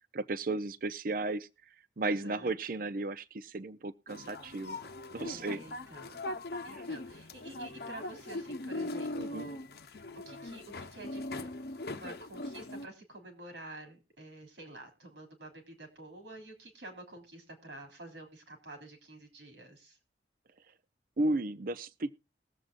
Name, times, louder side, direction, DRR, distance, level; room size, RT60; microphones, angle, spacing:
voice 1, 0.1-1.5 2.0-4.8 5.1-5.6 6.7-6.8 9.1-9.5 21.2-22.2, right 2 dB, 50° right, 0.6 m, -34 dB
voice 2, 2.0-2.5 5.3-6.2 6.6-9.6 9.9-11.5 11.8-20.0, right 2 dB, 90° right, 3.4 m, -49 dB
sound 1, 4.1-12.9, left 2 dB, 60° left, 0.8 m, -40 dB
20.5 x 7.7 x 2.5 m
head